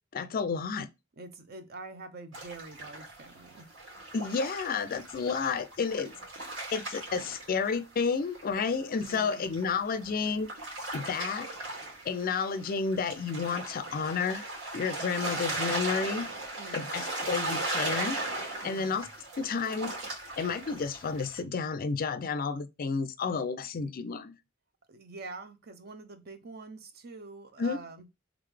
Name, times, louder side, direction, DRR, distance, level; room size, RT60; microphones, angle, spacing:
voice 1, 0.1-0.9 4.1-6.1 6.4-10.5 10.9-11.5 12.0-14.5 14.7-16.3 16.7-19.1 19.4-19.9 20.4-24.4 27.6-27.8, left 5 dB, 45° left, 0.4 m, -31 dB
voice 2, 1.2-3.7 9.1-9.5 16.5-17.0 18.6-19.0 24.9-28.1, right 3 dB, 50° right, 0.7 m, -45 dB
sound 1, 2.3-8.0 8.3-21.4, right 2 dB, 75° right, 2.1 m, -38 dB
3.8 x 3.5 x 3.3 m
head